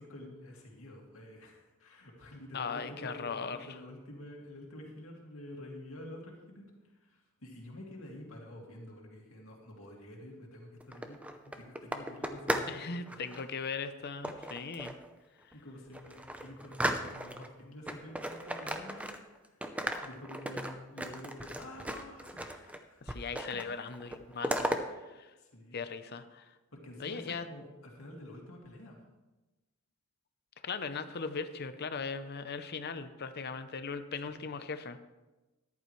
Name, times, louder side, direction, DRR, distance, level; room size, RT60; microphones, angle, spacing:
voice 1, 0.0-13.2 14.5-14.8 15.5-19.7 20.0-23.3 25.4-25.8 26.7-29.0 34.3-34.5, left 1 dB, 85° left, -1 dB, 2.3 m, -49 dB
voice 2, 2.5-3.6 12.7-14.9 23.1-24.8 25.1-25.3 25.7-26.5 27.0-27.5 30.6-35.0, left 5 dB, 50° left, 10 dB, 0.7 m, -38 dB
sound 1, 10.8-12.8 13.1-13.4 14.2-15.1 15.5-15.6 15.9-17.5 17.9-19.4 19.6-22.8 23.1-23.7 23.9-24.8, right 1 dB, 5° right, 0.7 m, -36 dB
14.0 x 11.0 x 3.2 m, 1.1 s
head